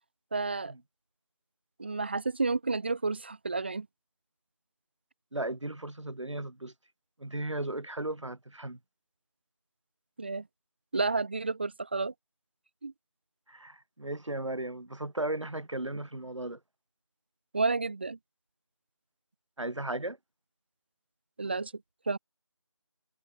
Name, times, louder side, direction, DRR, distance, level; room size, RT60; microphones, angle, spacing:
voice 1, 0.3-0.7 1.8-3.9 10.2-10.4 10.9-12.1 12.8-12.9 17.5-18.2 21.4-21.7 22.1-22.2, right 3 dB, 20° right, 2.1 m, -30 dB
voice 2, 5.3-6.7 7.2-8.8 13.5-16.6 19.6-20.2, right 2 dB, 75° right, 5.4 m, -36 dB
figure-of-eight pair, 175°, 16 cm